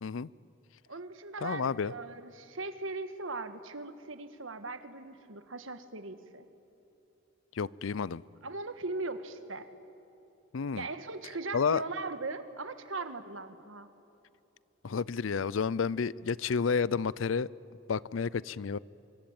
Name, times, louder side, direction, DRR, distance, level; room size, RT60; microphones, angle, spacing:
voice 1, 0.9-6.4 8.4-9.7 10.7-13.9, right 3 dB, 75° right, 10 dB, 1.6 m, -39 dB
voice 2, 1.4-1.9 7.6-8.2 10.5-10.8 11.5-11.8 14.8-17.5 17.9-18.8, left 5 dB, 75° left, 22 dB, 0.5 m, -30 dB
25.0 x 22.5 x 8.9 m, 2.9 s
head